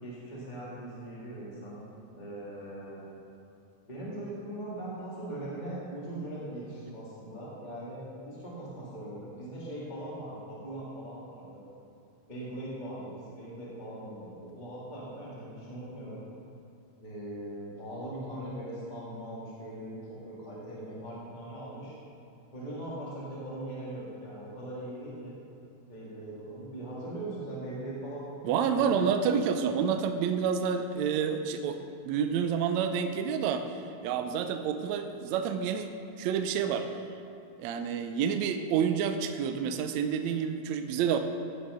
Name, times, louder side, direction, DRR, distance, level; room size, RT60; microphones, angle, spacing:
voice 1, 0.0-1.9 2.1-3.0 3.9-11.6 12.3-16.2 17.0-21.9 22.5-25.3 25.9-28.3 28.7-29.3, right 1 dB, 15° left, -7 dB, 1.6 m, -40 dB
voice 2, 28.4-31.8 32.0-33.7 34.0-35.9 36.2-36.9 37.6-41.2, right 7 dB, 80° right, 7 dB, 1.7 m, -28 dB
15.0 x 6.3 x 5.5 m, 2.7 s
omnidirectional pair, 3.8 m